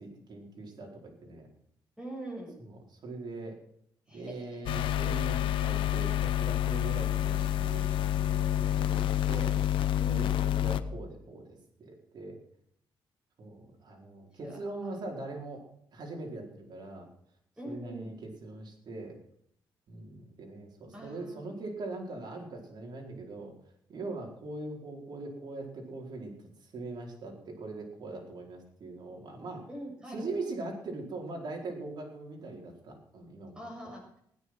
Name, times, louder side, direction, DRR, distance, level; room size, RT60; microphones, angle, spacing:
voice 1, 0.0-1.5 2.6-3.6 4.1-9.6 10.1-12.4 13.4-17.1 17.6-19.2 19.9-23.5 23.9-29.6 30.1-33.9, right 2 dB, 55° right, 0 dB, 4.7 m, -41 dB
voice 2, 2.0-2.6 4.1-4.9 10.0-10.6 14.3-15.0 17.6-18.1 20.9-21.4 29.7-30.3 33.5-34.2, right 1 dB, 10° right, -2 dB, 7.5 m, -44 dB
sound 1, 4.7-10.8, left 12 dB, 90° left, 0.9 m, -28 dB
16.5 x 10.0 x 6.3 m, 0.70 s
cardioid pair, 120°, 9 cm